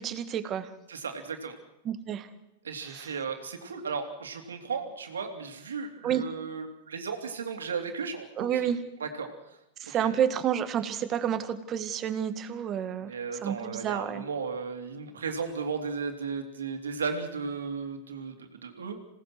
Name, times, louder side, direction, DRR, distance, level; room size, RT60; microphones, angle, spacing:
voice 1, 0.0-0.7 1.8-2.3 2.9-3.1 6.0-6.2 8.4-8.8 9.8-13.1 13.4-14.2, right 9 dB, 35° right, 10 dB, 2.1 m, -30 dB
voice 2, 0.9-1.5 2.6-8.7 9.0-9.6 10.0-10.1 13.0-19.0, right 5 dB, 90° right, 5 dB, 3.1 m, -35 dB
27.0 x 18.0 x 6.3 m, 0.90 s
hypercardioid pair, 110°, 0 cm